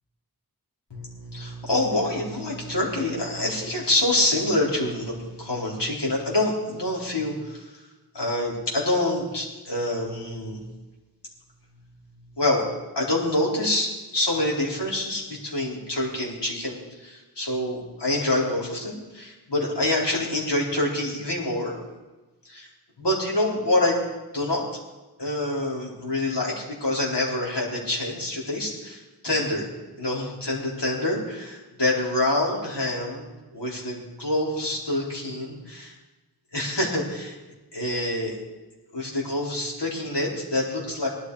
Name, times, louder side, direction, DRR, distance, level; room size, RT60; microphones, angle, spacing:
voice 1, 0.9-7.8 8.1-10.6 12.4-12.6 12.9-21.8 22.4-22.7 23.0-24.0 24.3-24.6 25.2-29.7 30.0-33.3 33.5-35.9 36.5-37.4 37.7-38.3 38.9-41.1, left 1 dB, 85° left, -4 dB, 4.3 m, -26 dB
18.5 x 12.0 x 4.9 m, 1.2 s
wide cardioid pair, 70°, 40 cm